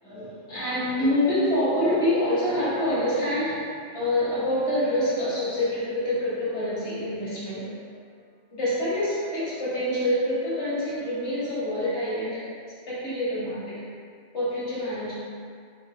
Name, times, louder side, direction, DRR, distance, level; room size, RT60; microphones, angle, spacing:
voice 1, 0.0-7.8 8.5-12.4 12.9-13.8 14.3-15.1, left 1 dB, 75° left, -11 dB, 1.7 m, -26 dB
sound 1, 6.6-8.2 8.7-11.8, equal, 85° right, 1.1 m, -51 dB
3.4 x 2.6 x 3.7 m, 2.2 s
omnidirectional pair, 1.1 m